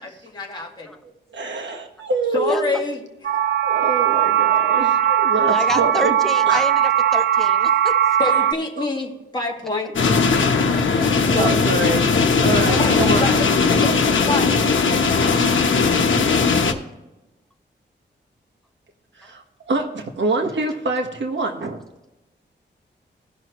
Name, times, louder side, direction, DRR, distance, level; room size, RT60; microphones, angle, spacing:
voice 1, 0.3-0.9 2.3-3.0 8.2-9.9 11.3-11.5 12.8-14.6, left 2 dB, 25° left, -2 dB, 2.0 m, -26 dB
voice 2, 1.3-2.9 3.6-6.2 6.5-6.6 8.8-8.9 11.4-12.0 12.4-13.3 19.2-21.8, right 3 dB, 75° right, 2 dB, 1.4 m, -25 dB
sound 1, 3.2-8.5, right 9 dB, 60° right, 0.5 m, -19 dB
voice 3, 5.5-8.0 11.0-11.1 12.7-13.1, equal, ahead, 5 dB, 0.8 m, -29 dB
sound 2, 10.0-16.7, left 4 dB, 85° left, 1.0 m, -18 dB
17.5 x 6.1 x 3.1 m, 1.0 s
wide cardioid pair, 105°, 19 cm